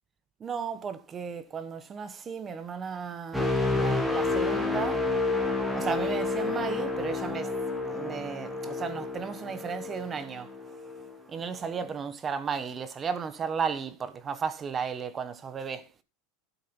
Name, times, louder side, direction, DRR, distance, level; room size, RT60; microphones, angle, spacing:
voice 1, 0.4-5.0 5.7-7.5 7.9-10.5 11.3-15.9, right 6 dB, 20° right, 1.3 m, -34 dB
sound 1, 3.3-11.2 11.6-11.9, left 3 dB, ahead, 2.5 m, -30 dB
12.5 x 7.6 x 5.5 m
supercardioid pair, 160°, 0 cm